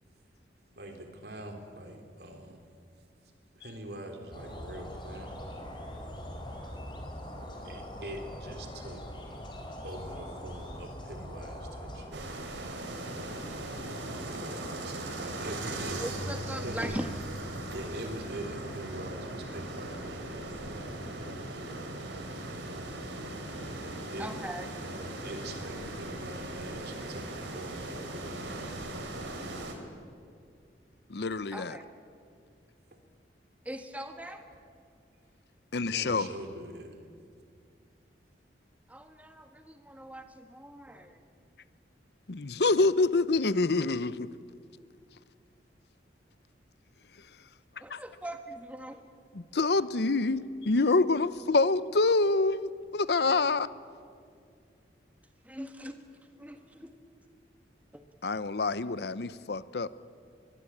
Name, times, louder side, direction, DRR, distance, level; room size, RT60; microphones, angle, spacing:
voice 1, 0.6-2.6 3.5-5.4 7.6-9.0 9.8-12.2 14.3-16.0 16.6-17.0 17.7-20.2 23.7-24.3 24.8-28.7 32.9-33.0 35.9-37.0, right 1 dB, 60° right, 3.3 m, -43 dB
sound 1, 4.3-12.1, equal, 25° left, 3.8 m, -42 dB
sound 2, 12.1-29.8, right 1 dB, 90° right, 3.6 m, -38 dB
voice 2, 16.0-17.1 21.7-21.9 23.5-23.6 24.2-24.7 31.5-31.8 33.6-34.5 38.9-41.2 47.8-49.0 55.4-56.0 56.4-56.9 57.9-58.0, right 1 dB, 10° right, 1.5 m, -41 dB
voice 3, 31.1-31.8 35.7-36.3 42.3-44.3 47.9-48.0 49.3-53.7 58.2-59.9, left 3 dB, 65° left, 0.7 m, -26 dB
25.0 x 22.0 x 8.6 m
head